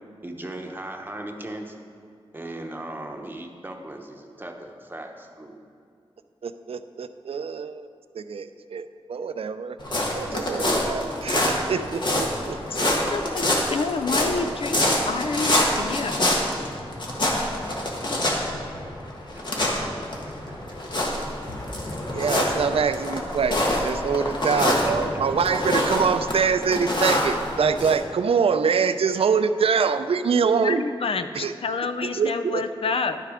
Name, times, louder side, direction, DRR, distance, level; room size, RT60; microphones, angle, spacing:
voice 1, 0.2-1.7 2.3-5.5 19.3-19.4 19.8-19.9 20.7-21.6 24.1-25.8, right 1 dB, 20° right, 3 dB, 1.0 m, -39 dB
voice 2, 6.4-7.9 8.2-9.8 10.1-12.9 22.1-30.8 31.3-31.5 32.0-32.6, right 6 dB, 75° right, 11 dB, 0.4 m, -25 dB
sound 1, 9.8-27.9, left 1 dB, 50° left, 1.4 m, -26 dB
voice 3, 13.1-16.3 30.6-33.3, left 4 dB, 70° left, 9 dB, 0.5 m, -28 dB
11.0 x 6.6 x 5.0 m, 2.4 s
wide cardioid pair, 85°, 10 cm